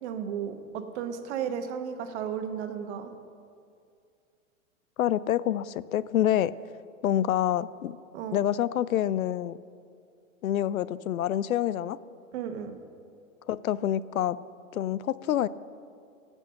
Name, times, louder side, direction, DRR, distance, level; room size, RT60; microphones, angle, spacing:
voice 1, 0.0-3.1 8.1-8.4 12.3-12.8, right 8 dB, 50° right, 7 dB, 1.3 m, -34 dB
voice 2, 5.0-6.5 7.0-8.0 8.3-9.6 10.4-12.0 13.5-14.4 14.7-15.5, left 11 dB, 75° left, 18 dB, 0.5 m, -27 dB
16.5 x 6.2 x 6.6 m, 2.3 s
hypercardioid pair, 110°, 42 cm